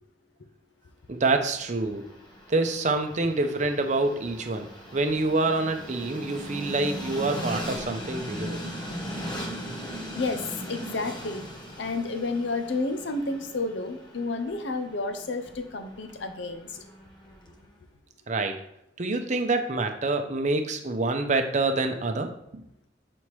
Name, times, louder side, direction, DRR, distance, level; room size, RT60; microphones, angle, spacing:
voice 1, 1.1-2.1 2.5-4.7 4.9-8.6 18.3-18.6 19.0-22.6, right 3 dB, 40° right, 6 dB, 0.7 m, -26 dB
Train, 1.5-17.6, equal, 25° left, 1.0 m, -39 dB
voice 2, 9.9-11.4 11.8-16.8, left 3 dB, 85° left, 8 dB, 0.7 m, -31 dB
7.6 x 4.2 x 3.2 m, 0.79 s
head